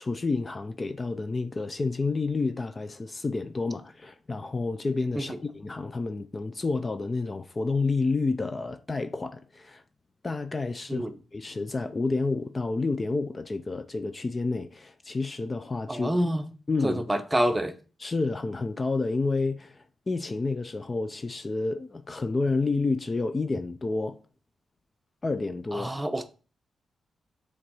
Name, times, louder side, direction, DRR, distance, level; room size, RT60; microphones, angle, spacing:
voice 1, 0.0-9.8 10.2-16.1 16.7-17.0 18.0-24.2 25.2-26.0, left 3 dB, 35° left, 0.5 m, -29 dB
voice 2, 15.9-16.4 16.8-17.7 25.7-26.3, right 1 dB, 15° right, 0.8 m, -27 dB
6.6 x 3.6 x 5.5 m
cardioid pair, 70°, 0 cm